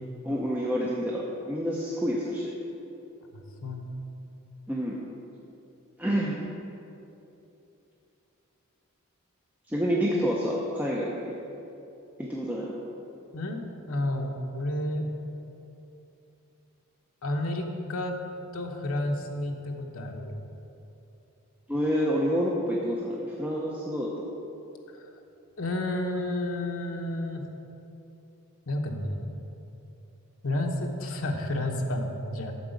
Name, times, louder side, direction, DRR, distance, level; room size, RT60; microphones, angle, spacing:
voice 1, 0.2-2.5 4.7-5.0 6.0-6.4 9.7-11.2 12.2-12.7 21.7-24.3, equal, 5° right, -4 dB, 0.6 m, -28 dB
voice 2, 3.3-3.9 13.3-15.0 17.2-18.1 18.5-20.4 25.6-27.4 28.7-29.2 30.4-32.5, left 1 dB, 70° left, 2 dB, 0.9 m, -31 dB
8.3 x 7.0 x 5.2 m, 2.8 s
head